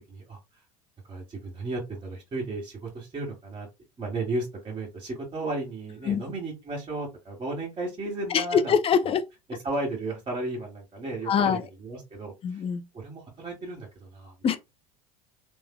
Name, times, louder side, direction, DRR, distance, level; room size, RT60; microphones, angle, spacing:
voice 1, 0.1-0.4 1.1-3.7 4.0-8.7 9.0-9.1 9.5-12.6 12.9-14.3, right 2 dB, 30° right, 1.6 m, -34 dB
voice 2, 8.3-9.2 11.3-11.6 12.4-12.8 14.4-14.6, left 7 dB, 30° left, 0.6 m, -23 dB
3.4 x 3.1 x 2.2 m
figure-of-eight pair, 70°, 18 cm